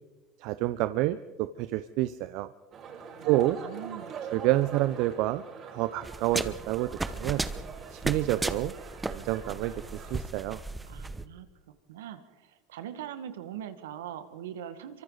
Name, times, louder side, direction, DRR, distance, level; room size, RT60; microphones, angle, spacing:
voice 1, 0.4-2.5 3.2-3.6 4.3-5.4 5.7-7.4 7.9-8.7 9.0-10.6, right 16 dB, 65° right, 12 dB, 0.7 m, -28 dB
sound 1, 2.7-10.2, right 6 dB, 45° right, 5.6 m, -43 dB
voice 2, 3.2-4.3 10.8-11.5 11.9-15.0, right 10 dB, 80° right, 10 dB, 1.7 m, -42 dB
sound 2, 6.0-11.2, right 2 dB, 15° right, 1.1 m, -35 dB
28.0 x 24.0 x 4.0 m, 1.2 s
hypercardioid pair, 85°, 0 cm